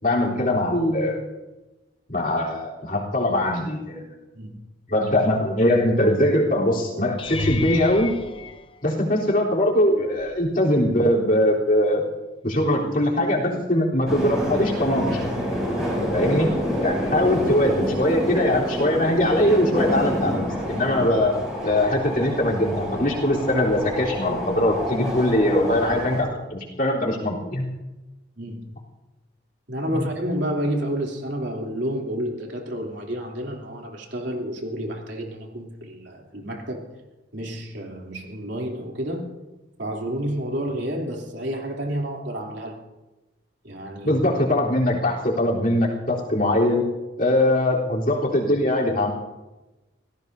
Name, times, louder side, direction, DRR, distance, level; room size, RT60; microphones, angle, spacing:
voice 1, 0.0-1.2 2.1-4.1 4.9-8.1 8.8-12.1 12.4-15.2 16.1-16.5 16.8-21.3 21.6-27.7 44.0-46.9 47.2-49.1, left 1 dB, 45° left, -3 dB, 3.6 m, -21 dB
sound 1, 7.2-9.5 10.2-10.6 11.0-11.1 15.5-15.6, left 3 dB, 30° left, 0.7 m, -33 dB
sound 2, 14.1-26.2, equal, 5° right, 6.6 m, -28 dB
voice 2, 15.7-16.2 28.4-28.8 29.7-36.9 37.3-39.3 39.8-42.8 43.6-44.2, equal, 70° right, 0 dB, 3.1 m, -30 dB
27.0 x 17.5 x 2.7 m, 1.1 s
head